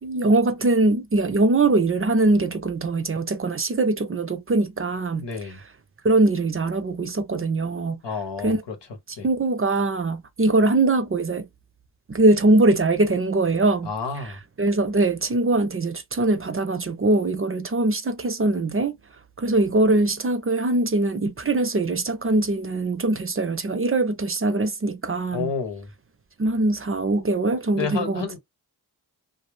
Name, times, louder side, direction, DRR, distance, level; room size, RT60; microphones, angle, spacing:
voice 1, 0.0-5.3 6.0-8.0 8.4-8.6 9.2-11.5 12.1-13.9 14.2-14.3 14.6-19.0 19.4-25.5 26.4-28.4, right 2 dB, 30° right, 0.5 m, -22 dB
voice 2, 5.2-5.6 8.0-8.7 9.2-9.3 13.8-14.4 25.3-25.9 27.7-28.4, left 5 dB, 85° left, 1.0 m, -30 dB
2.3 x 2.0 x 3.2 m
cardioid pair, 40°, 41 cm